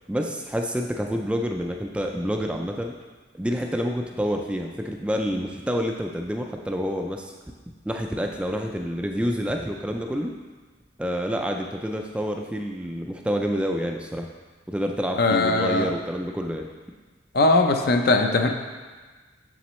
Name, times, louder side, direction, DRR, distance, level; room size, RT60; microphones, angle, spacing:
voice 1, 0.1-2.9 3.3-7.3 7.9-10.3 11.0-14.3 14.7-16.7, equal, 5° right, 2 dB, 0.3 m, -28 dB
voice 2, 15.2-15.9 17.3-18.5, left 2 dB, 50° left, 5 dB, 0.5 m, -20 dB
7.1 x 6.9 x 3.1 m, 1.4 s
head